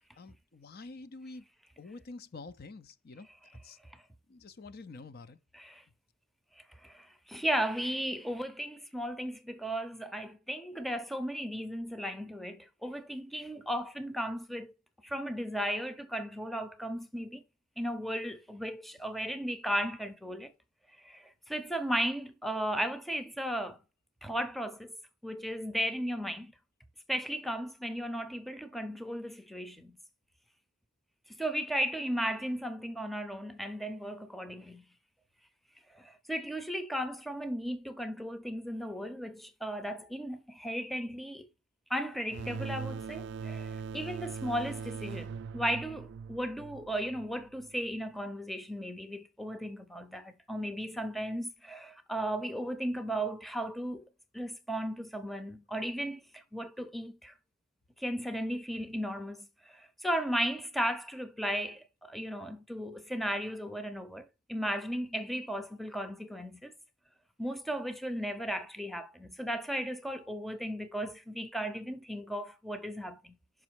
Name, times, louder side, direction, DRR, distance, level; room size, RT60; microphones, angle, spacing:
voice 1, 0.2-1.5 1.8-3.3 3.6-3.8 4.3-5.4, left 3 dB, 50° left, 0.6 m, -47 dB
voice 2, 5.5-5.8 6.6-14.7 15.0-17.4 17.8-20.5 21.0-23.8 24.2-24.9 25.2-26.5 27.1-30.0 31.4-34.8 35.9-41.5 41.9-54.0 54.3-57.3 58.0-66.7 67.4-73.3, equal, ahead, 0.6 m, -35 dB
sound 1, 42.3-47.7, right 5 dB, 60° right, 0.3 m, -41 dB
6.1 x 5.2 x 4.6 m
head